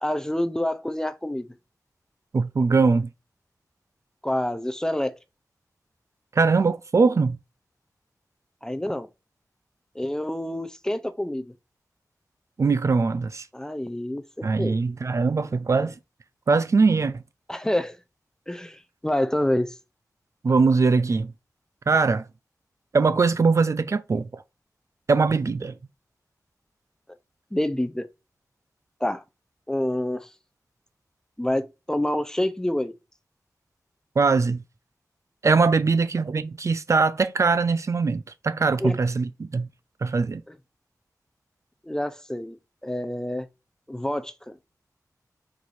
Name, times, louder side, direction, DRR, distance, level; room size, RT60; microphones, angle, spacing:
voice 1, 0.0-1.5 4.2-5.1 8.6-9.1 10.0-11.5 13.5-14.8 17.5-18.0 18.5-19.7 27.5-28.1 29.0-29.2 29.7-30.3 31.4-32.9 38.8-38.9 41.9-42.6 42.8-43.5 43.9-44.3, left 1 dB, 10° left, 0.5 m, -27 dB
voice 2, 2.3-3.1 6.3-7.4 12.6-13.5 14.4-16.0 16.5-17.2 20.4-21.3 21.9-22.2 22.9-24.4 25.1-25.7 34.2-34.6 35.4-39.7 40.0-40.4, right 4 dB, 50° right, 0.4 m, -21 dB
4.6 x 2.7 x 4.1 m
wide cardioid pair, 100°, 7 cm